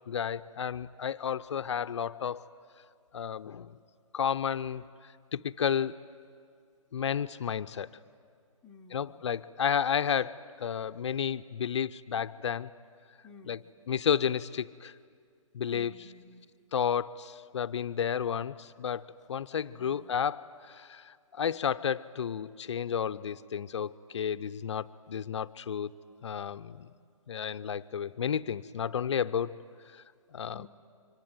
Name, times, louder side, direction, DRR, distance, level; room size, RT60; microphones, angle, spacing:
voice 1, 0.1-2.5 3.1-3.8 4.1-4.8 5.3-6.0 6.9-7.9 8.9-12.7 13.5-13.6 13.9-14.9 15.5-15.9 16.7-25.9 26.2-26.9 27.3-29.6 29.9-30.0 30.3-30.7, left 8 dB, 55° left, 13 dB, 0.6 m, -32 dB
voice 2, 8.6-9.2 13.2-13.7 15.7-16.7 19.8-20.1 30.5-30.7, left 3 dB, 5° left, -3 dB, 0.7 m, -53 dB
25.0 x 24.0 x 9.5 m, 2.2 s
hypercardioid pair, 160°, 18 cm